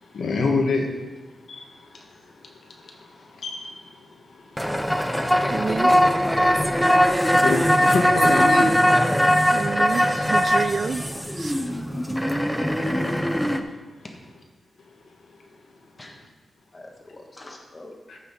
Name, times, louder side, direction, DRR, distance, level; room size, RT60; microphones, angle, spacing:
voice 1, 0.0-1.0 1.5-5.5 7.4-8.7 18.1-18.2, left 3 dB, 70° left, 1 dB, 1.7 m, -28 dB
sound 1, 4.6-13.6, equal, ahead, 0.5 m, -20 dB
voice 2, 5.5-5.9 9.5-11.1 11.4-11.5, right 5 dB, 45° right, 12 dB, 0.3 m, -28 dB
voice 3, 12.3-13.5 14.0-14.2 16.0-16.1 16.7-17.9, left 2 dB, 25° left, 1 dB, 1.4 m, -43 dB
14.0 x 5.7 x 4.2 m, 1.2 s
wide cardioid pair, 150°, 0 cm